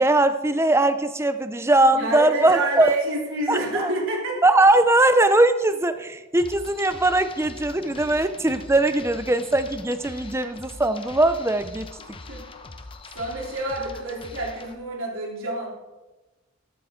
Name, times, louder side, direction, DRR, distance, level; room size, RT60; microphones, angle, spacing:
voice 1, 0.0-2.9 3.5-3.9 4.4-11.9, right 2 dB, 10° right, 10 dB, 0.6 m, -20 dB
voice 2, 1.9-4.4 12.0-12.4 13.1-15.7, right 2 dB, 70° right, -2 dB, 3.3 m, -28 dB
sound 1, 6.4-14.7, left 3 dB, 25° left, 0.9 m, -42 dB
13.0 x 12.5 x 3.8 m, 1.1 s
head